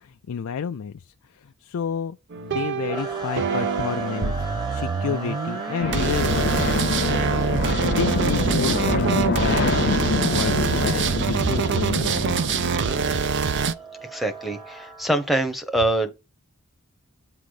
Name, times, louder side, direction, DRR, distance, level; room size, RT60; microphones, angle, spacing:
voice 1, 0.0-12.4, left 6 dB, 80° left, 0.4 m, -31 dB
sound 1, 2.3-13.7, right 5 dB, 55° right, 0.5 m, -25 dB
sound 2, 2.9-15.3, right 3 dB, 20° right, 1.1 m, -37 dB
Vulcan Fly Over (Last Ever Flight), 5.8-13.2, left 3 dB, 50° left, 0.7 m, -26 dB
voice 2, 14.1-16.2, right 1 dB, ahead, 0.9 m, -24 dB
8.3 x 3.9 x 4.9 m
head